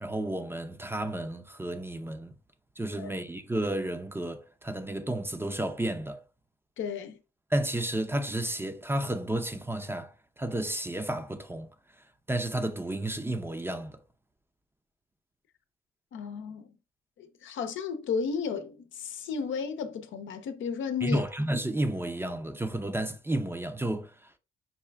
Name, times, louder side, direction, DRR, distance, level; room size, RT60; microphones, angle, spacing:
voice 1, 0.0-2.3 2.8-6.2 7.5-11.7 12.3-14.0 21.0-24.4, right 1 dB, 10° right, 0.6 m, -32 dB
voice 2, 6.8-7.2 16.1-16.7 17.2-21.2, left 6 dB, 75° left, 0.7 m, -33 dB
5.6 x 2.3 x 3.4 m
cardioid pair, 90°, 20 cm